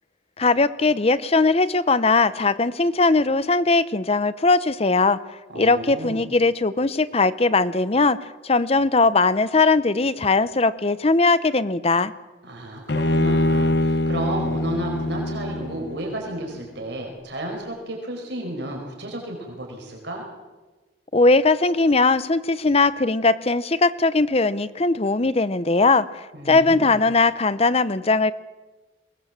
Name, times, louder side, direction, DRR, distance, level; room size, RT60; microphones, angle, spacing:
voice 1, 0.4-5.2 5.5-8.2 8.4-12.1 21.1-26.1 26.5-28.3, left 3 dB, 35° left, 15 dB, 0.8 m, -19 dB
voice 2, 5.5-6.2 12.4-20.2 26.3-27.0, right 1 dB, 65° right, 1 dB, 4.8 m, -32 dB
Bowed string instrument, 12.9-16.2, left 1 dB, 60° left, 0.9 m, -23 dB
22.0 x 18.5 x 7.4 m, 1.2 s
head